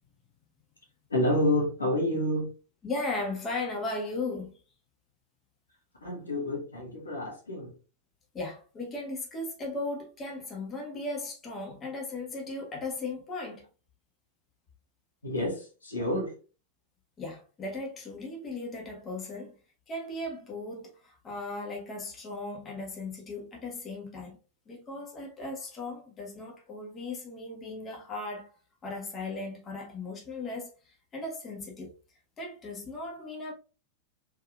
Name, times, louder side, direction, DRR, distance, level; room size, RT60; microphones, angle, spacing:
voice 1, 1.1-2.5 6.0-7.7 15.2-16.3, left 1 dB, 75° left, 1.7 m, -29 dB
voice 2, 2.8-4.5 8.3-13.6 17.2-19.5 19.9-24.4 24.7-28.5 28.8-31.9 32.4-33.5, left 2 dB, 25° left, 1.7 m, -37 dB
5.4 x 3.8 x 2.5 m
figure-of-eight pair, 90°, 0 cm